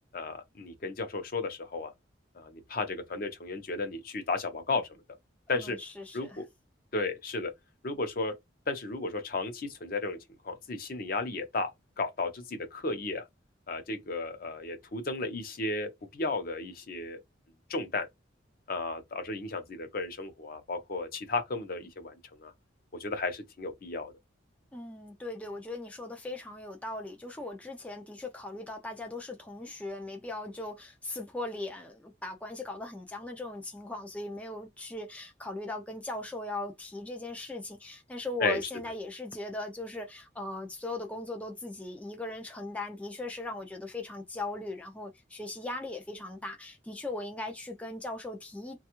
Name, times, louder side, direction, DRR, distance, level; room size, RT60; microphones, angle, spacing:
voice 1, 0.1-1.9 2.3-4.8 5.5-5.8 6.1-6.4 6.9-7.5 7.8-8.3 8.7-10.2 10.4-11.7 12.0-13.2 13.7-17.2 17.7-18.1 18.7-22.5 23.0-24.1 38.4-38.6, left 3 dB, 50° left, 0.6 m, -34 dB
voice 2, 5.5-6.4 24.7-48.8, left 2 dB, 5° left, 0.3 m, -39 dB
3.2 x 2.3 x 2.9 m
head